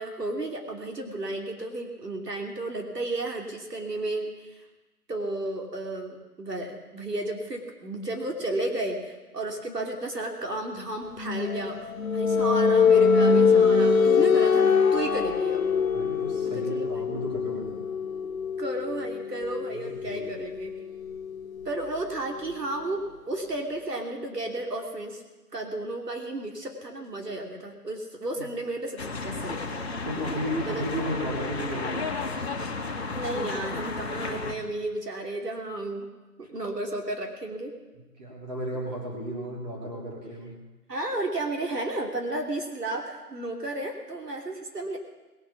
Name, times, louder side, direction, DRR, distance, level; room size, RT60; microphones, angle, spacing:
voice 1, 0.0-4.6 5.1-15.6 16.5-17.1 18.6-20.7 21.6-25.2 25.5-29.8 30.6-30.8 33.1-36.1 36.4-37.7 40.9-45.0, right 2 dB, 75° right, 2 dB, 2.9 m, -33 dB
sound 1, 11.2-22.7, left 5 dB, 55° left, 0.9 m, -24 dB
voice 2, 15.9-17.9 19.8-20.3 28.4-28.5 30.0-32.1 38.2-40.5, equal, 25° right, -4 dB, 3.6 m, -34 dB
sound 2, 29.0-34.5, left 3 dB, 40° left, 1.7 m, -33 dB
20.5 x 7.2 x 7.1 m, 1.2 s
figure-of-eight pair, 175°, 48 cm